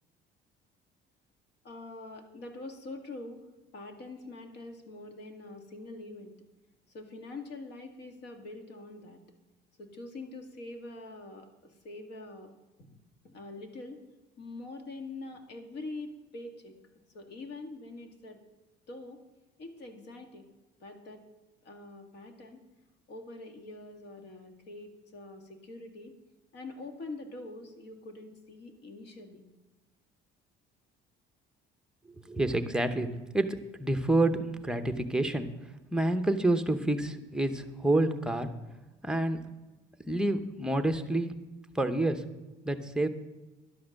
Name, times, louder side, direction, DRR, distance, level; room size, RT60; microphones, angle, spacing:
voice 1, 1.6-3.5 3.7-6.3 6.9-9.2 9.8-12.5 12.8-13.0 13.2-14.0 14.4-18.4 18.9-19.2 19.6-20.5 20.8-21.2 21.6-22.6 23.1-26.2 26.5-29.4, left 2 dB, 60° left, 4 dB, 1.9 m, -44 dB
voice 2, 32.2-35.5 35.9-38.5 39.0-39.4 40.1-41.3 41.7-42.2 42.6-43.1, right 1 dB, 5° right, 7 dB, 0.7 m, -28 dB
11.5 x 8.4 x 6.4 m, 1.1 s
cardioid pair, 150°, 20 cm